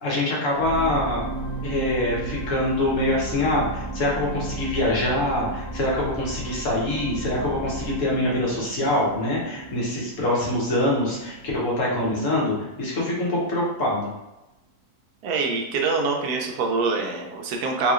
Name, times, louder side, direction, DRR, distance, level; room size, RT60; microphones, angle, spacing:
voice 1, 0.0-1.2 1.6-14.1, left 1 dB, 60° left, -5 dB, 1.4 m, -24 dB
sound 1, 0.5-12.9 13.5-13.6, right 3 dB, 30° left, 0.4 m, -35 dB
voice 2, 15.2-17.9, right 3 dB, 85° right, 2 dB, 1.2 m, -24 dB
3.4 x 2.9 x 2.4 m, 0.98 s
omnidirectional pair, 1.6 m